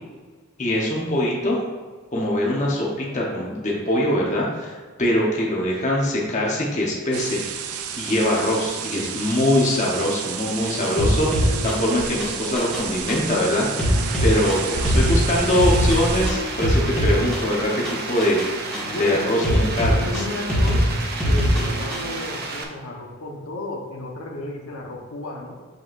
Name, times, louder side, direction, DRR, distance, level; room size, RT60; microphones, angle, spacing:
voice 1, 0.6-1.6 2.1-7.4 8.0-14.0 14.2-18.7 19.0-20.2, left 1 dB, 35° left, -3 dB, 1.1 m, -23 dB
sound 1, 7.1-16.3, right 6 dB, 85° right, 0.5 m, -30 dB
sound 2, 11.0-22.2, equal, 5° left, 1.4 m, -23 dB
sound 3, 12.7-22.6, right 3 dB, 45° right, 0.8 m, -33 dB
voice 2, 18.9-20.9 21.2-25.6, left 1 dB, 70° left, -1 dB, 1.1 m, -33 dB
7.8 x 5.2 x 2.6 m, 1.5 s
head